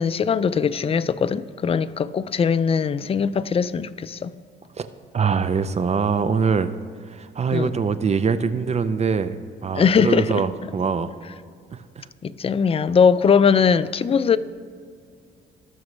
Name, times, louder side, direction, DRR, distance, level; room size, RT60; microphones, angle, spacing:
voice 1, 0.0-4.3 7.5-7.7 9.7-10.4 12.2-14.4, left 6 dB, 30° left, 0.4 m, -20 dB
voice 2, 5.1-6.7 7.1-9.4 9.6-11.1 11.7-12.0, right 5 dB, 35° right, 0.5 m, -23 dB
18.5 x 6.2 x 3.2 m
cardioid pair, 90°, 20 cm